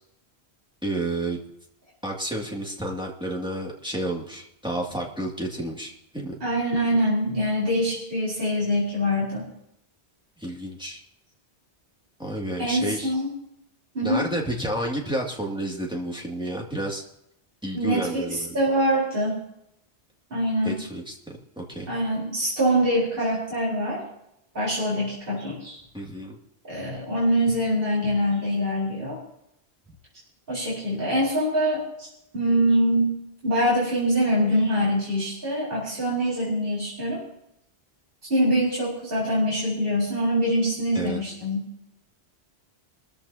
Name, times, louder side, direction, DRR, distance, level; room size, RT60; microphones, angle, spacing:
voice 1, 0.8-1.4 2.0-6.4 10.4-11.0 12.2-13.1 14.0-17.0 17.6-18.6 20.6-21.9 25.9-26.4 40.9-41.2, right 1 dB, 5° right, -2 dB, 2.4 m, -30 dB
voice 2, 6.4-9.5 12.6-13.3 13.9-14.3 17.7-18.2 18.5-19.4 20.3-20.8 21.9-24.0 24.5-25.8 26.7-29.2 30.5-32.1 32.3-33.2 33.4-37.2 38.3-41.7, equal, 55° right, -6 dB, 4.8 m, -24 dB
24.5 x 14.0 x 2.9 m, 0.80 s
omnidirectional pair, 1.1 m